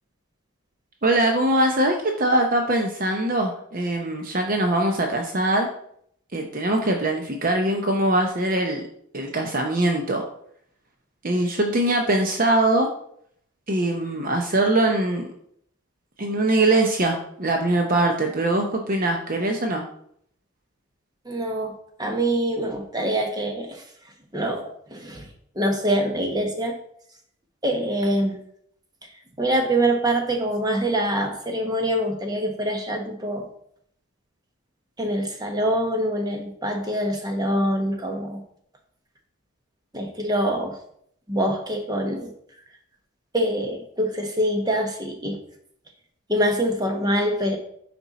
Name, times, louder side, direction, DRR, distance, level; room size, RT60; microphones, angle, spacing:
voice 1, 1.0-5.7 6.3-8.9 9.1-10.2 11.2-12.9 13.7-15.3 16.2-19.8, right 1 dB, 40° right, 2 dB, 0.7 m, -22 dB
voice 2, 21.2-21.7 22.0-23.8 24.3-25.2 25.5-26.8 27.6-28.4 29.4-33.5 35.0-38.4 39.9-40.8 41.3-42.3 43.3-45.4 46.3-47.6, right 1 dB, 20° right, 3 dB, 1.1 m, -24 dB
9.5 x 4.4 x 4.1 m, 0.68 s
head